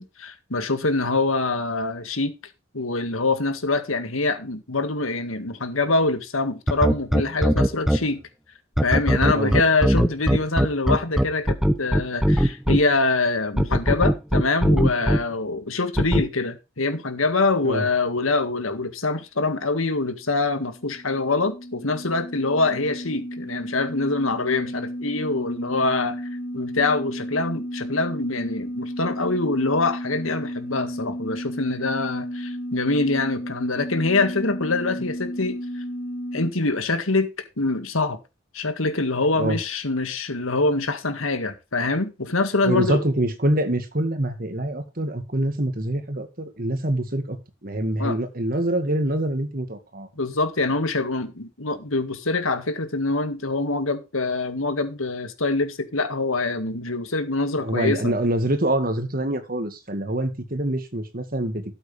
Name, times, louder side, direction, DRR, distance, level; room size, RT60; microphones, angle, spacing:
voice 1, 0.0-2.3 2.7-8.2 8.8-26.2 26.5-35.8 36.3-37.3 37.6-38.2 38.5-43.0 48.0-48.2 50.2-58.1, left 3 dB, 75° left, 1.8 m, -24 dB
sound 1, 6.7-8.0 8.8-12.8 13.6-15.2 16.0-16.2, equal, ahead, 0.8 m, -19 dB
sound 2, 20.3-36.5, equal, 40° left, 2.5 m, -33 dB
voice 2, 42.6-47.4 47.6-50.1 57.6-61.7, right 1 dB, 40° right, 1.9 m, -25 dB
13.0 x 7.9 x 3.3 m
head